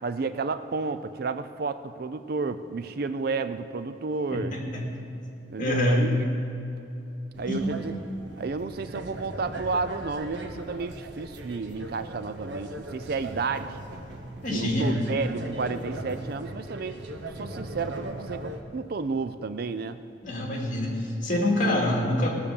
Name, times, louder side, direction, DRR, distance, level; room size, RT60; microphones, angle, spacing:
voice 1, 0.0-4.5 5.5-6.3 7.4-7.9 8.4-13.8 14.5-17.0 17.4-20.0, right 4 dB, 50° right, 11 dB, 0.4 m, -31 dB
voice 2, 4.3-4.8 5.6-6.0 7.5-7.7 14.4-14.9 20.2-22.4, left 1 dB, 40° left, -2 dB, 2.5 m, -25 dB
sound 1, 7.3-18.6, right 1 dB, 70° right, 1.1 m, -39 dB
18.5 x 6.9 x 6.9 m, 2.8 s
head